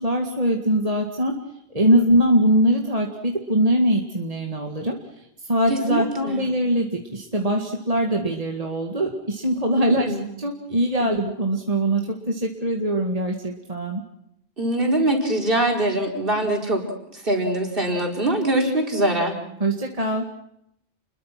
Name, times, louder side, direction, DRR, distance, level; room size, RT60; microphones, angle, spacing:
voice 1, 0.0-1.4 1.7-5.0 5.5-14.0 19.6-20.3, equal, 35° right, 1 dB, 2.2 m, -22 dB
voice 2, 5.7-6.5 10.1-10.2 11.0-11.1 14.6-16.8 17.1-19.3, right 1 dB, 55° right, 1 dB, 4.9 m, -23 dB
30.0 x 21.5 x 6.0 m, 0.77 s
omnidirectional pair, 1.1 m